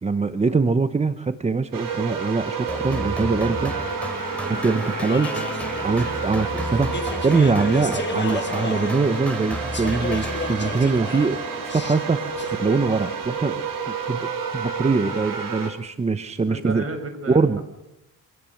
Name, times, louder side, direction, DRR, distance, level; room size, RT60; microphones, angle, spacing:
voice 1, 0.0-3.7 4.5-5.3 5.8-12.2 12.5-16.8 17.3-17.6, right 4 dB, 20° right, 10 dB, 0.8 m, -23 dB
sound 1, 1.7-15.7, right 6 dB, 65° right, 3.9 m, -30 dB
sound 2, 2.7-11.0, left 1 dB, 5° left, 3.0 m, -33 dB
Speech / Chatter, 3.9-13.2, left 5 dB, 30° left, 1.5 m, -35 dB
voice 2, 16.5-17.6, right 3 dB, 40° right, 7 dB, 5.1 m, -33 dB
26.0 x 17.5 x 6.5 m, 0.85 s
cardioid pair, 125°, 35 cm